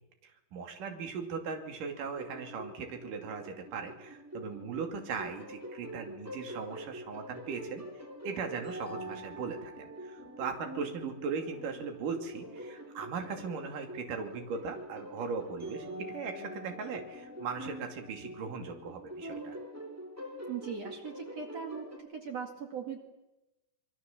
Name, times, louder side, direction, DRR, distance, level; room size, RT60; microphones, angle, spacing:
voice 1, 0.2-7.8 8.2-19.6, right 5 dB, 65° right, 4 dB, 4.1 m, -38 dB
sound 1, 2.2-22.0, equal, 5° right, 3.0 m, -45 dB
voice 2, 20.5-23.0, right 6 dB, 50° right, 3 dB, 3.1 m, -40 dB
27.5 x 22.5 x 7.3 m, 0.97 s
omnidirectional pair, 4.3 m